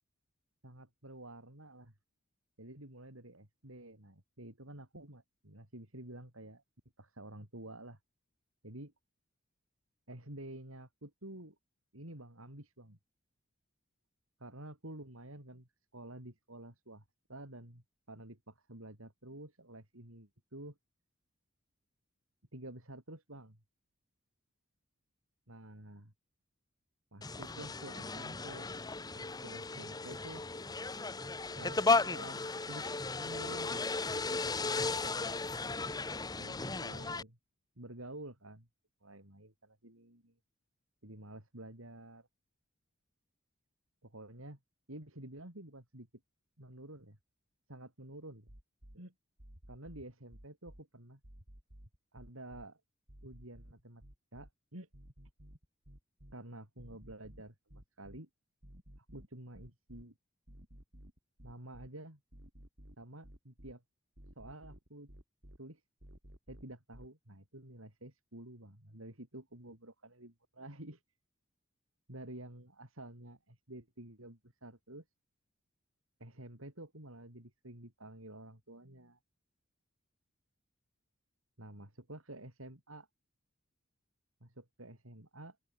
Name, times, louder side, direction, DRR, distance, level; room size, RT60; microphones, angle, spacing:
voice 1, 0.6-1.9 2.6-6.6 7.0-8.0 8.6-8.9 10.1-11.6 11.9-13.0 14.4-17.0 17.3-20.8 22.5-23.6 25.5-26.1 27.1-28.7 29.1-30.4 31.5-32.9 33.2-33.9 34.3-35.4 36.3-37.4 37.8-38.7 39.0-40.3 41.0-42.3 44.0-44.6 44.9-46.1 46.6-47.2 47.7-48.5 48.9-49.1 49.7-51.2 52.1-52.8 53.2-54.0 54.3-54.9 56.3-58.3 59.0-60.1 61.4-62.2 63.0-63.8 64.4-65.1 65.6-65.8 66.5-71.0 72.1-75.0 76.2-79.2 81.6-83.1 84.4-85.6, right 1 dB, 80° right, 5.6 m, -50 dB
sound 1, 27.2-37.2, left 3 dB, 20° left, 0.9 m, -35 dB
sound 2, 48.5-49.0 49.4-50.8 51.2-52.7 53.1-54.5 54.9-56.3 56.8-58.2 58.6-60.0 60.5-61.9 62.3-63.7 64.2-65.6 66.0-67.1, equal, 55° right, 4.3 m, -54 dB
open air
head